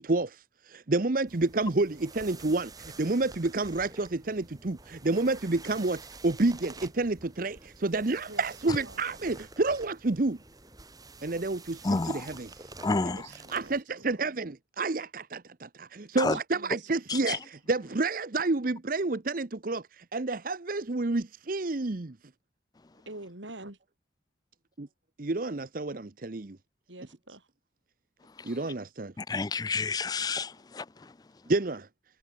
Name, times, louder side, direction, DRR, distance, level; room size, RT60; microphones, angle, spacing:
voice 1, 0.0-10.4 11.2-12.7 13.5-22.1 25.2-26.6 28.4-29.1 31.5-31.9, right 2 dB, 50° right, 0.8 m, -29 dB
sound 1, 1.3-13.8, right 3 dB, 20° right, 7.7 m, -49 dB
voice 2, 8.3-9.1 13.0-13.8 14.1-14.4 16.3-17.4 23.1-23.8 26.9-27.5, right 2 dB, 85° right, 6.2 m, -47 dB
voice 3, 11.8-12.2 12.8-13.3 16.2-16.4 17.1-17.4 29.2-30.8, left 3 dB, 20° left, 0.4 m, -29 dB
head